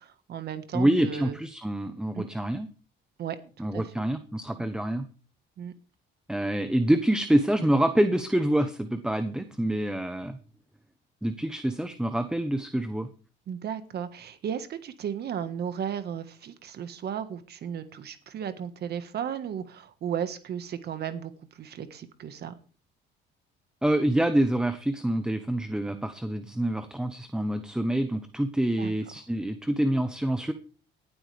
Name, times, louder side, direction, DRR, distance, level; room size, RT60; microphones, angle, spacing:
voice 1, 0.0-1.4 2.1-2.3 3.2-3.4 3.7-4.0 5.6-5.7 13.5-22.5 28.8-28.9, right 8 dB, 55° right, 10 dB, 1.5 m, -35 dB
voice 2, 0.7-2.7 3.6-5.1 6.3-10.4 11.2-13.1 23.8-30.5, right 1 dB, 5° right, 9 dB, 0.9 m, -26 dB
18.5 x 12.0 x 3.4 m, 0.37 s
cardioid pair, 125°, 20 cm